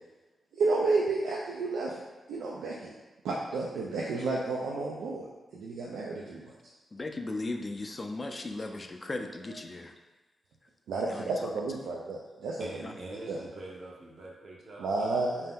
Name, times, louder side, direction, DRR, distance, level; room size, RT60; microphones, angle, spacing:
voice 1, 0.5-2.0 2.3-2.9 3.2-5.3 5.5-6.5 10.9-12.7 13.3-13.4 14.8-15.5, right 3 dB, 85° right, -4 dB, 0.3 m, -31 dB
voice 2, 6.9-9.9 11.0-11.5 12.8-12.9, left 2 dB, 35° left, 5 dB, 0.3 m, -37 dB
voice 3, 12.6-15.3, right 1 dB, 60° right, -3 dB, 0.7 m, -45 dB
2.7 x 2.2 x 3.4 m, 1.1 s
cardioid pair, 55°, 0 cm